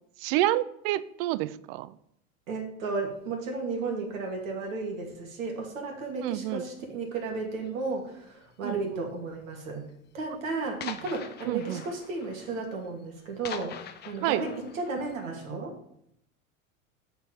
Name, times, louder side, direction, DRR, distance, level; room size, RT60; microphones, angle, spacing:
voice 1, 0.2-1.9 6.2-6.6 8.6-9.0 10.8-11.0 11.5-11.8 14.2-14.4, right 15 dB, 45° right, 18 dB, 0.5 m, -29 dB
voice 2, 2.5-9.8 10.1-13.8 14.0-15.8, right 3 dB, 65° right, 1 dB, 2.6 m, -34 dB
sound 1, 3.2-3.4 4.1-4.6 4.8-5.3 5.6-5.9 6.4-6.5 6.7-6.8 7.6-8.0 8.9-9.0 9.3-9.4 9.8-9.9 10.2-10.3 10.8-15.5, left 9 dB, 25° left, 0.7 m, -44 dB
7.7 x 4.6 x 7.2 m, 0.74 s
hypercardioid pair, 90°, 43 cm